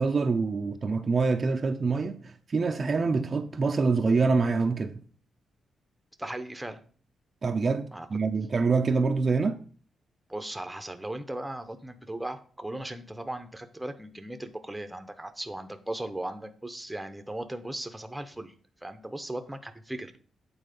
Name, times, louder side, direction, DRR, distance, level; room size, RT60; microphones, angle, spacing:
voice 1, 0.0-5.0 7.4-9.6, right 4 dB, 35° right, 0.5 m, -26 dB
voice 2, 6.2-6.8 7.9-8.1 10.3-18.5 18.8-20.1, right 1 dB, 5° right, 0.7 m, -37 dB
8.8 x 4.2 x 5.2 m
cardioid pair, 130°, 0 cm